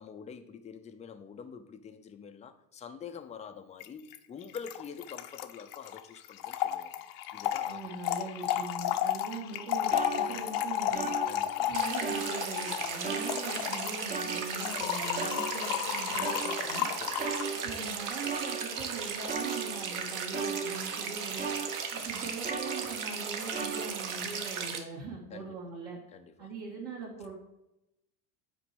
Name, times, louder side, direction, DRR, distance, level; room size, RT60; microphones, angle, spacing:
voice 1, 0.0-6.9 7.3-8.2 11.2-11.8 16.9-17.3 24.2-24.5 25.3-25.7 26.1-26.5, left 6 dB, 15° left, 7 dB, 0.5 m, -46 dB
Trickle dribble / Fill (with liquid), 3.8-3.9 4.1-4.2 4.4-17.5, left 11 dB, 55° left, 0.7 m, -33 dB
voice 2, 7.7-11.1 11.7-16.3 16.6-16.9 17.6-21.5 21.9-26.0 26.4-27.3, right 4 dB, 60° right, -5 dB, 2.5 m, -41 dB
sound 1, 9.5-9.6 9.9-11.7 12.0-12.7 13.0-15.9 16.2-22.1 22.4-23.2 23.5-24.2, right 5 dB, 20° right, 0.9 m, -38 dB
sound 2, 11.7-24.8, right 6 dB, 45° right, 1.2 m, -36 dB
6.0 x 4.4 x 6.1 m, 0.89 s
supercardioid pair, 100°, 46 cm